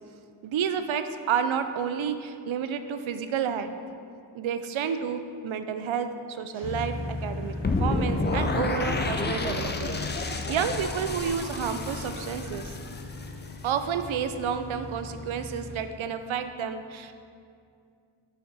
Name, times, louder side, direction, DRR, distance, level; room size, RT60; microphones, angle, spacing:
voice 1, 0.4-3.8 4.3-12.8 13.6-17.1, right 7 dB, 70° right, 9 dB, 0.5 m, -30 dB
Gunshot gunfire, 6.5-7.8 9.4-10.2 11.0-11.3 11.9-12.7, right 1 dB, 40° right, 1.2 m, -52 dB
sound 1, 6.6-15.8, left 3 dB, 55° left, 0.7 m, -37 dB
sound 2, 7.6-13.7, left 2 dB, 25° left, 0.4 m, -30 dB
5.9 x 5.9 x 4.0 m, 2.4 s
wide cardioid pair, 110°, 50 cm